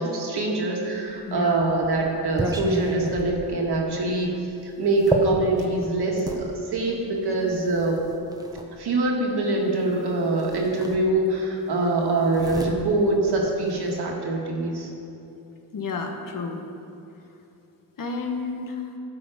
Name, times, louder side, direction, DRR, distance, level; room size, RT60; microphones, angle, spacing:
voice 1, 0.0-4.3 4.6-8.0 8.8-14.9, right 2 dB, 75° right, -1 dB, 1.8 m, -24 dB
sound 1, 1.1-6.4 7.3-8.7 9.9-10.0 10.4-11.5 11.7-14.0, right 1 dB, 10° right, 0.8 m, -32 dB
voice 2, 1.3-1.6 15.7-16.6 18.0-18.8, left 4 dB, 55° left, 3 dB, 1.1 m, -30 dB
12.0 x 6.4 x 4.9 m, 2.8 s
wide cardioid pair, 120°, 40 cm